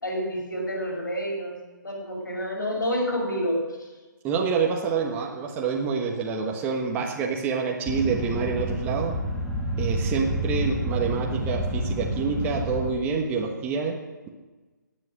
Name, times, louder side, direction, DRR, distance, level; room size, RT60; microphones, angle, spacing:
voice 1, 0.0-1.6 1.8-3.6, equal, 75° left, 0 dB, 6.0 m, -28 dB
voice 2, 4.2-9.1 9.8-14.0, right 5 dB, 15° right, 0 dB, 1.3 m, -27 dB
sound 1, 7.9-12.9, right 1 dB, 5° left, 2.0 m, -29 dB
19.0 x 7.7 x 6.4 m, 1.2 s
figure-of-eight pair, 145°, 10 cm